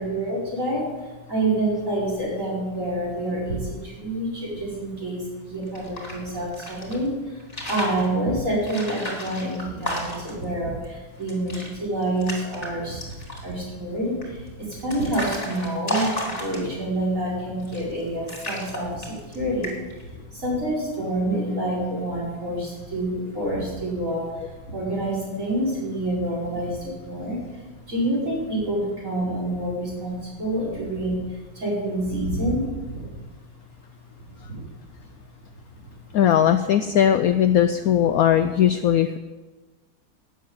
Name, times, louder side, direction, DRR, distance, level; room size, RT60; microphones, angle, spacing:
voice 1, 0.0-13.1 13.4-33.0 34.3-34.7, right 1 dB, 40° right, -6 dB, 5.4 m, -28 dB
sound 1, 5.6-7.0 7.4-8.1 8.6-10.4 10.8-10.9 11.2-11.7 12.0-12.7 13.0-13.5 14.2-16.9 17.6-18.0 18.3-19.4 19.6-20.0, left 1 dB, 20° left, 2.8 m, -32 dB
voice 2, 36.1-39.2, left 10 dB, 80° left, 10 dB, 0.8 m, -19 dB
12.0 x 7.1 x 9.0 m, 1.2 s
omnidirectional pair, 2.1 m